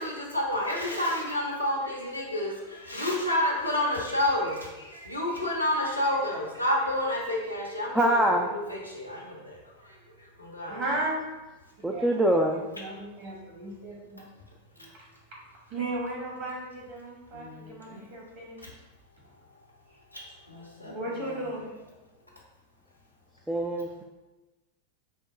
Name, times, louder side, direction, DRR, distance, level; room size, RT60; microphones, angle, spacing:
voice 1, 0.0-11.0 17.3-18.0 20.1-20.2 20.5-21.5, left 1 dB, 90° left, -2 dB, 0.8 m, -30 dB
voice 2, 7.9-8.5 11.8-12.6 23.5-24.0, right 1 dB, 5° right, 0 dB, 0.3 m, -24 dB
voice 3, 10.7-11.2 11.8-12.1 12.5-14.2 14.8-14.9 15.7-18.6 20.9-21.9, right 2 dB, 45° right, -3 dB, 1.4 m, -35 dB
4.4 x 2.2 x 3.6 m, 1.1 s
figure-of-eight pair, 90°, 0 cm